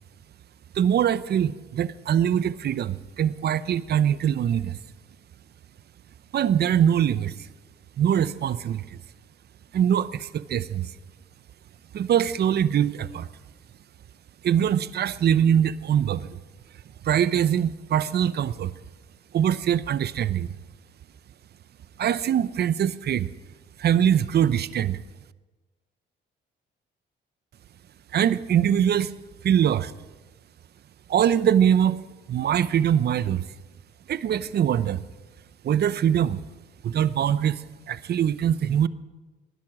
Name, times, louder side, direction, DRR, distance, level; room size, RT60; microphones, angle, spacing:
voice 1, 0.7-4.8 6.3-7.3 8.0-9.0 9.7-10.9 11.9-13.3 14.4-16.4 17.0-18.7 19.3-20.5 22.0-23.3 23.8-25.0 28.1-29.1 29.4-29.9 31.1-32.0 32.3-33.4 34.1-35.0 35.6-36.4 36.8-37.6 37.9-38.9, right 9 dB, 55° right, 16 dB, 0.7 m, -23 dB
19.5 x 10.5 x 6.3 m, 1.2 s
cardioid pair, 90°, 20 cm